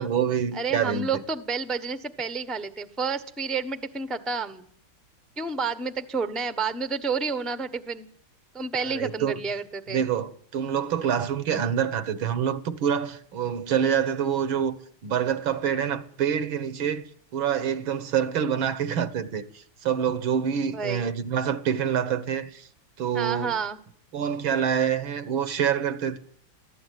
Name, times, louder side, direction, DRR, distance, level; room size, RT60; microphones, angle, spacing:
voice 1, 0.0-1.2 8.8-9.4 9.9-14.8 15.0-22.7 23.0-23.6 24.1-26.2, right 8 dB, 70° right, 2.0 m, -26 dB
voice 2, 0.5-4.7 5.4-8.1 8.5-10.1 20.7-21.2 23.1-23.8, right 4 dB, ahead, 0.8 m, -30 dB
24.0 x 15.5 x 9.4 m
omnidirectional pair, 2.3 m